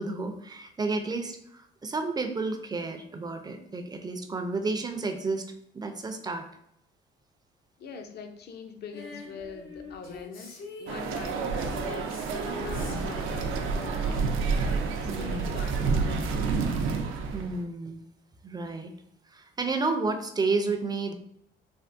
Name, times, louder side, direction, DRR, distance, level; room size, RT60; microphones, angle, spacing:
voice 1, 0.0-5.5 5.7-6.5 12.9-13.0 15.0-15.5 17.3-18.0 18.4-18.9 19.3-21.1, right 3 dB, 20° right, 6 dB, 0.4 m, -31 dB
voice 2, 7.8-12.3 12.6-14.5 15.0-16.6, left 5 dB, 55° left, 6 dB, 0.5 m, -42 dB
Female singing, 8.9-15.9 17.0-17.1, left 3 dB, 85° left, 0.7 m, -45 dB
sound 1, 10.9-17.6, right 4 dB, 85° right, 0.4 m, -29 dB
3.4 x 2.2 x 2.5 m, 0.76 s
cardioid pair, 90°, 20 cm